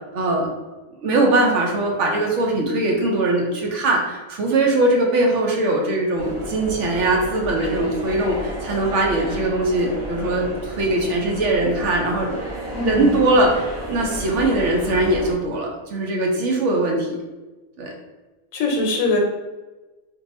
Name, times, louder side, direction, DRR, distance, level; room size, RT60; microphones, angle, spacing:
voice 1, 0.1-0.5 1.0-12.3 12.8-17.2 17.8-17.9, right 2 dB, 70° right, 0 dB, 0.9 m, -21 dB
sound 1, 6.2-15.3, equal, 35° right, 0.5 m, -32 dB
voice 2, 12.7-13.1 18.5-19.2, left 2 dB, 80° left, 0 dB, 1.0 m, -22 dB
2.6 x 2.3 x 4.1 m, 1.2 s
omnidirectional pair, 1.4 m